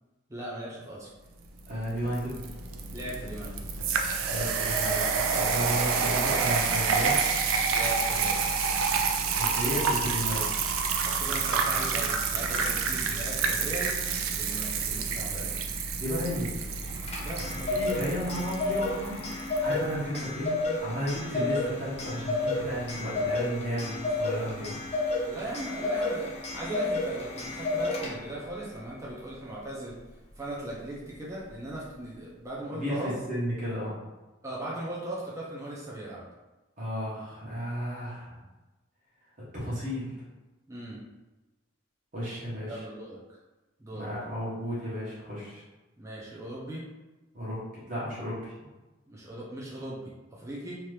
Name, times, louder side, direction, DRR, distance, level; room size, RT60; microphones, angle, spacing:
voice 1, 0.3-1.1 2.9-3.7 7.7-8.5 10.0-10.1 11.0-13.9 14.3-15.6 17.2-17.8 21.3-21.5 25.2-26.3 26.5-30.0 30.4-33.1 34.4-36.2 40.7-41.0 42.7-43.2 43.8-44.1 46.0-46.9 49.1-50.8, right 1 dB, 15° right, -6 dB, 0.5 m, -38 dB
sound 1, 1.6-19.6, right 5 dB, 85° right, 0.4 m, -28 dB
voice 2, 1.7-2.5 4.3-7.2 9.3-10.4 12.5-12.7 16.0-16.5 17.7-20.5 20.8-24.8 32.7-34.0 36.8-38.4 39.5-40.1 42.1-42.8 43.9-45.6 47.3-48.5, equal, 40° right, -8 dB, 1.1 m, -33 dB
Clock, 16.8-28.4, left 2 dB, 30° left, 0.7 m, -31 dB
2.9 x 2.5 x 3.2 m, 1.1 s
head